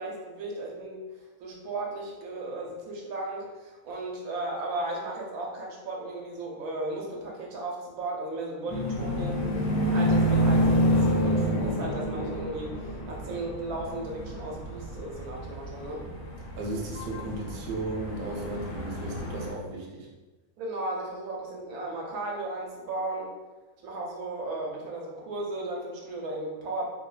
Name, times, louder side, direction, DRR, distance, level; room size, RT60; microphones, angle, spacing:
voice 1, 0.0-16.1 20.6-23.3 23.8-26.9, right 2 dB, 90° right, -1 dB, 1.1 m, -35 dB
sound 1, 8.7-19.5, equal, 90° left, 1.2 m, -28 dB
voice 2, 16.6-20.1, right 2 dB, 70° right, -2 dB, 0.5 m, -35 dB
2.9 x 2.1 x 2.3 m, 1.2 s
omnidirectional pair, 1.5 m